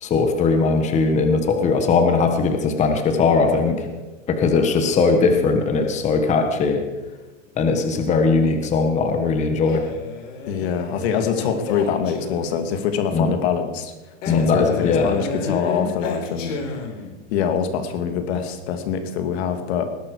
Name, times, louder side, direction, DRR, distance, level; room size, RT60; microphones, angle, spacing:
voice 1, 0.0-3.9 4.3-6.8 7.6-9.8 13.1-13.3 14.3-15.2, left 4 dB, 20° left, 5 dB, 1.4 m, -19 dB
Male speech man speaking, 9.6-12.7 14.2-17.2, left 4 dB, 80° left, 4.0 m, -31 dB
voice 2, 10.5-13.9 14.3-16.8 17.3-19.9, left 7 dB, 55° left, 7 dB, 2.4 m, -24 dB
20.0 x 11.5 x 4.9 m, 1.1 s
supercardioid pair, 155°, 38 cm